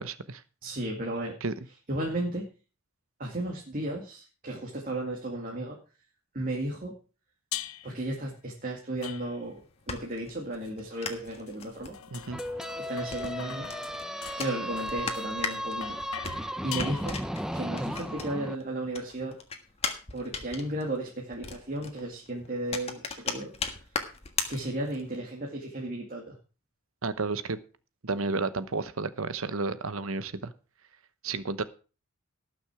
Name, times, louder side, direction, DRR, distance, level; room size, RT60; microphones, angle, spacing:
voice 1, 0.0-0.4 1.4-1.5 12.1-12.4 27.0-27.6 28.0-30.5 31.2-31.6, right 3 dB, 75° right, 14 dB, 1.0 m, -31 dB
voice 2, 0.6-1.4 1.9-2.5 3.2-5.8 6.3-6.9 7.8-9.6 9.9-11.9 12.8-13.7 14.3-16.0 16.6-17.2 17.5-19.4 20.1-23.5 24.5-26.4, right 1 dB, 40° right, -1 dB, 2.2 m, -34 dB
sound 1, 7.5-8.1 9.0-9.7 10.6-17.5, left 11 dB, 80° left, 0.7 m, -43 dB
sound 2, 9.4-18.6 18.9-25.2, left 5 dB, 30° left, 1.5 m, -38 dB
sound 3, 12.3-18.6, equal, 5° right, 0.5 m, -35 dB
18.5 x 6.3 x 4.9 m, 0.35 s
head